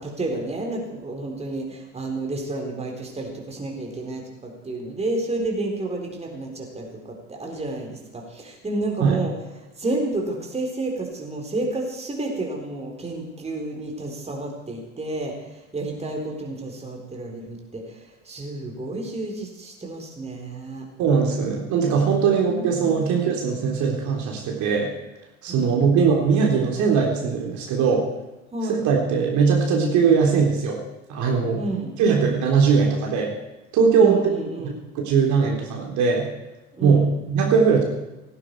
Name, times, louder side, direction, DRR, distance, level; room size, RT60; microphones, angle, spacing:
voice 1, 0.0-20.9 22.3-23.0 25.5-26.0 28.5-28.8 31.5-31.9 34.0-34.7 36.7-37.1, right 2 dB, 15° right, 1 dB, 4.1 m, -30 dB
voice 2, 21.0-24.9 25.4-28.1 28.8-30.8 31.1-31.6 32.0-33.3 33.7-34.2 35.1-36.3 36.8-37.0 37.3-37.8, right 5 dB, 50° right, 0 dB, 3.7 m, -20 dB
18.0 x 15.5 x 4.8 m, 1.0 s
figure-of-eight pair, 70°, 38 cm